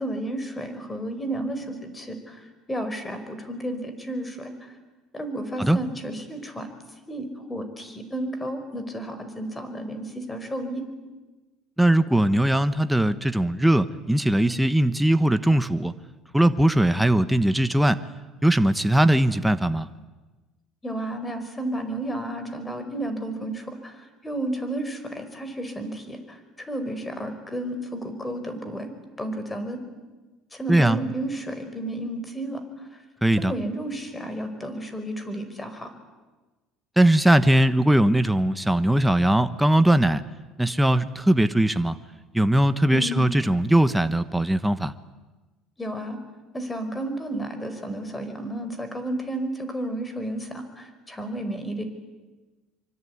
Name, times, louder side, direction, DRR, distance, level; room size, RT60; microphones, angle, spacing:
voice 1, 0.0-4.7 5.1-6.7 7.1-10.8 20.8-28.9 29.2-29.8 30.5-32.6 33.4-35.9 42.9-43.4 45.8-46.2 46.5-51.8, right 1 dB, 15° left, 9 dB, 5.2 m, -32 dB
voice 2, 11.8-15.9 16.3-18.0 18.4-19.9 30.7-31.0 33.2-33.5 37.0-40.2 40.6-42.0 42.3-44.9, right 1 dB, 5° right, 11 dB, 1.2 m, -20 dB
25.0 x 25.0 x 9.7 m, 1.2 s
supercardioid pair, 105°, 0 cm